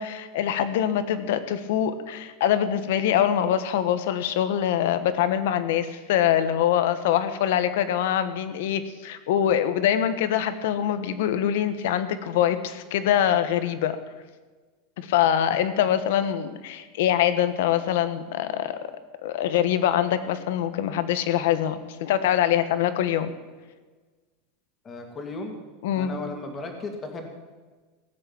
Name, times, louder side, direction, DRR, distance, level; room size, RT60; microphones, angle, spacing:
voice 1, 0.0-14.0 15.0-18.8 19.2-23.3 25.8-26.2, left 10 dB, 70° left, 12 dB, 1.2 m, -24 dB
voice 2, 24.8-25.5 26.0-27.3, left 3 dB, 20° left, 4 dB, 2.3 m, -35 dB
17.5 x 6.7 x 8.8 m, 1.4 s
supercardioid pair, 160°, 0 cm